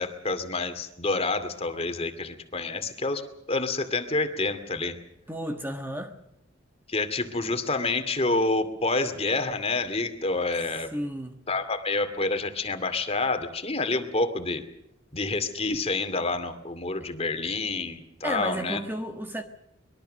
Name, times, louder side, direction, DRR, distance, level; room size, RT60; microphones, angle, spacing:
voice 1, 0.0-3.2 3.5-5.0 6.9-10.9 11.5-14.6 15.1-18.8, left 3 dB, 30° left, 2.4 m, -28 dB
voice 2, 5.3-6.2 10.6-11.4 18.2-19.4, equal, 10° right, 1.5 m, -33 dB
24.5 x 21.5 x 6.6 m
head